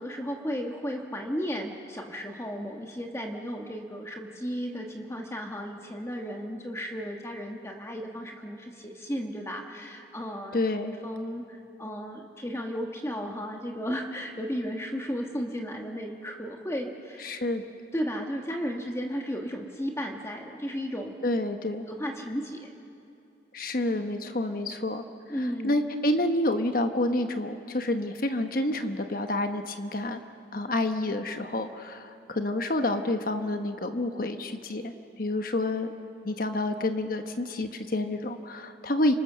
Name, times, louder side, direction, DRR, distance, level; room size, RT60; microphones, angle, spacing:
voice 1, 0.0-10.6 11.0-17.4 17.9-21.2 21.9-22.7 25.3-25.8, equal, 15° left, 2 dB, 1.3 m, -34 dB
voice 2, 10.5-10.9 17.2-17.6 21.2-21.9 23.5-25.0 25.6-30.2 30.5-35.9 36.2-39.1, left 1 dB, 50° left, 7 dB, 1.1 m, -28 dB
29.5 x 25.5 x 6.7 m, 2.6 s
head